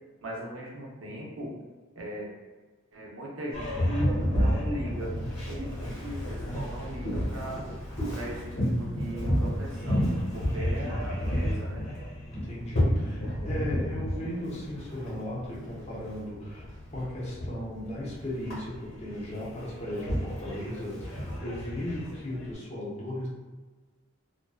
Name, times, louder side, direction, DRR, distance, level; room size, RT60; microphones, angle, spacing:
voice 1, 0.2-1.5 2.0-2.3 2.9-7.7 8.1-10.0 10.3-11.8, right 1 dB, 90° right, -2 dB, 0.6 m, -38 dB
Boat Water vehicle, 3.5-22.5, equal, 70° left, 1.2 m, -31 dB
voice 2, 10.4-11.0 12.3-23.3, left 1 dB, 30° left, -6 dB, 0.6 m, -37 dB
2.5 x 2.2 x 2.3 m, 1.3 s
head